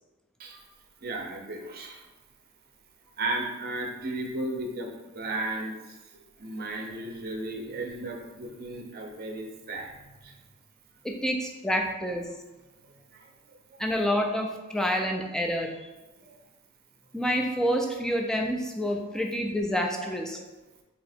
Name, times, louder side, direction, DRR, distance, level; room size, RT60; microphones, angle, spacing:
voice 1, 1.0-2.0 3.2-10.3 12.8-13.3 16.2-16.3 20.0-20.1, right 2 dB, 45° right, 2 dB, 0.6 m, -35 dB
voice 2, 11.0-12.3 13.8-15.9 17.1-20.4, equal, 5° left, 1 dB, 0.4 m, -28 dB
3.2 x 2.8 x 4.3 m, 1.1 s
head